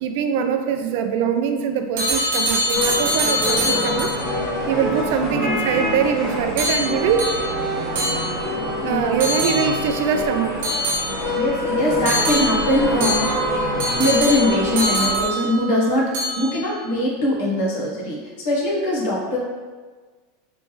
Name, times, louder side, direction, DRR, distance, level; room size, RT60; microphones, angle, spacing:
voice 1, 0.0-4.1 4.7-7.3 8.8-10.5, right 7 dB, 50° right, 6 dB, 0.3 m, -23 dB
sound 1, 2.0-4.3 6.6-8.7 9.2-10.0 10.6-11.5 12.0-15.8 16.1-16.7, equal, 70° right, 1.0 m, -24 dB
sound 2, 2.7-15.2, left 1 dB, ahead, 1.3 m, -26 dB
voice 2, 5.2-5.6 8.8-9.0 11.3-13.3 13.8-19.4, left 1 dB, 60° left, -4 dB, 1.3 m, -22 dB
4.3 x 3.3 x 3.2 m, 1.4 s
supercardioid pair, 175°, 0 cm